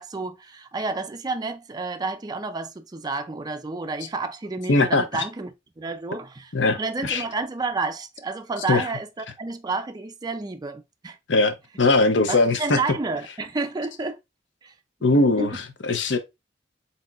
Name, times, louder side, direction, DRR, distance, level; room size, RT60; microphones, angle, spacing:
voice 1, 0.0-11.2 12.3-14.2 14.6-14.7 15.4-15.5, right 3 dB, 20° right, 0.4 m, -30 dB
voice 2, 4.7-5.2 6.5-7.2 8.7-8.9 11.3-12.8 15.0-16.2, left 2 dB, 70° left, 0.8 m, -21 dB
4.2 x 4.1 x 2.4 m
head